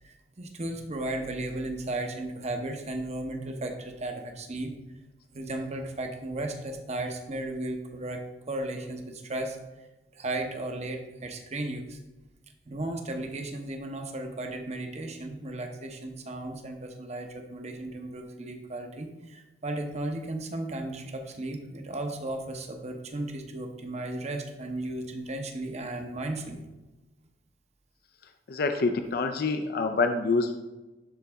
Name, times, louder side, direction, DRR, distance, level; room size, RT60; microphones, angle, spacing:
voice 1, 0.0-4.7 5.3-9.9 10.1-12.0 12.6-26.6, right 2 dB, 40° right, 4 dB, 0.9 m, -35 dB
voice 2, 28.5-30.6, left 3 dB, 60° left, 7 dB, 0.5 m, -26 dB
12.0 x 4.0 x 3.5 m, 1.1 s
head